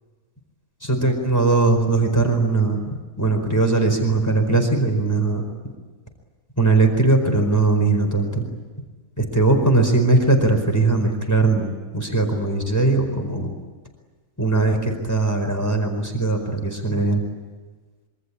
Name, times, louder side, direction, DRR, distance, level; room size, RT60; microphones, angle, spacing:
voice 1, 0.9-2.8 3.2-5.4 6.6-8.5 9.3-13.5 14.4-17.2, right 3 dB, 10° left, 4 dB, 4.6 m, -19 dB
26.5 x 24.5 x 8.5 m, 1.3 s
omnidirectional pair, 1.4 m